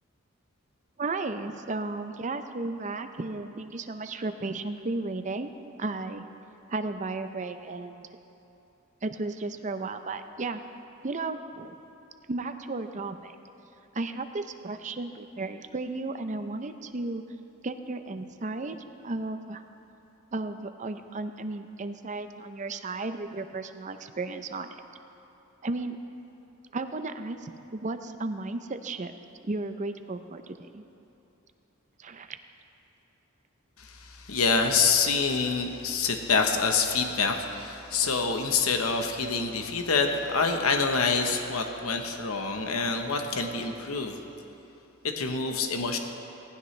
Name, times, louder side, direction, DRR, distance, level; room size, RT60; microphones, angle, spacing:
voice 1, 1.0-6.3 6.7-8.1 9.0-10.6 11.0-11.7 12.3-13.3 13.9-17.2 17.6-18.8 19.0-19.6 20.3-24.7 25.6-26.0 26.7-29.1 29.4-30.8 32.0-32.4, right 3 dB, 35° right, 8 dB, 0.6 m, -34 dB
voice 2, 33.8-44.2 45.0-46.0, left 4 dB, 85° left, 4 dB, 1.0 m, -26 dB
18.0 x 15.5 x 3.3 m, 2.9 s
head